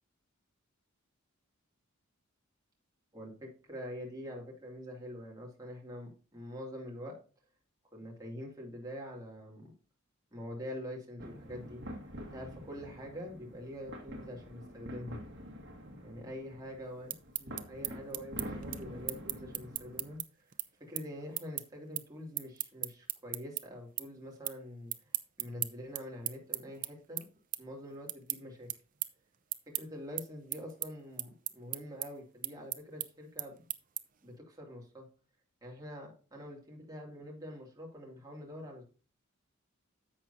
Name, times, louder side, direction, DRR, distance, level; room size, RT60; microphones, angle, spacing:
voice 1, 3.1-7.2 7.9-9.7 10.3-15.2 16.0-20.5 20.8-24.9 25.4-27.2 27.6-28.7 29.7-33.6 34.2-35.1 35.6-38.8, equal, 15° right, -1 dB, 2.5 m, -45 dB
sound 1, 11.2-20.2, equal, 55° right, 1.8 m, -46 dB
sound 2, 16.9-23.6 24.0-24.6 24.9-34.3, right 14 dB, 40° right, 0.6 m, -38 dB
11.0 x 7.5 x 2.7 m, 0.36 s
head